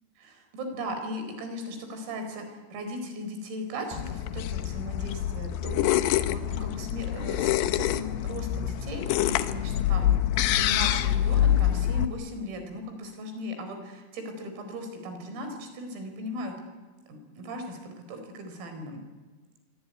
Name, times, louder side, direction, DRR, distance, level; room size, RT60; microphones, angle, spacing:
voice 1, 0.2-10.2 10.5-16.6 17.1-19.0, equal, 85° right, 7 dB, 7.1 m, -37 dB
sound 1, 3.9-12.1, left 12 dB, 80° left, 2.4 m, -26 dB
25.0 x 24.0 x 9.4 m, 1.3 s
omnidirectional pair, 5.9 m